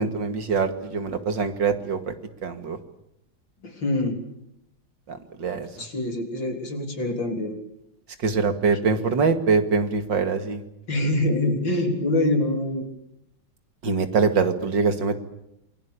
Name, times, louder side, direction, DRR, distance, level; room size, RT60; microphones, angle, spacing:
voice 1, 0.0-2.0 2.4-2.8 5.1-5.7 8.2-10.6 13.8-15.2, right 4 dB, 65° right, 8 dB, 2.8 m, -23 dB
voice 2, 3.6-4.2 5.8-7.6 8.8-9.2 10.9-12.9, left 1 dB, 65° left, 4 dB, 4.6 m, -25 dB
27.5 x 22.0 x 8.6 m, 0.80 s
omnidirectional pair, 2.2 m